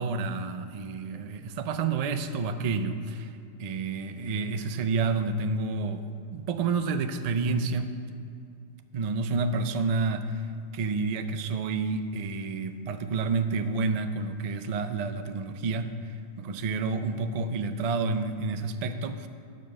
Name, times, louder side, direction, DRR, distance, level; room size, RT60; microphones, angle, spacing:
voice 1, 0.0-3.3 3.6-6.0 6.3-7.9 8.9-10.4 10.7-16.0 16.4-19.3, right 4 dB, 90° right, 8 dB, 0.3 m, -29 dB
10.0 x 5.3 x 7.5 m, 2.4 s
omnidirectional pair, 1.4 m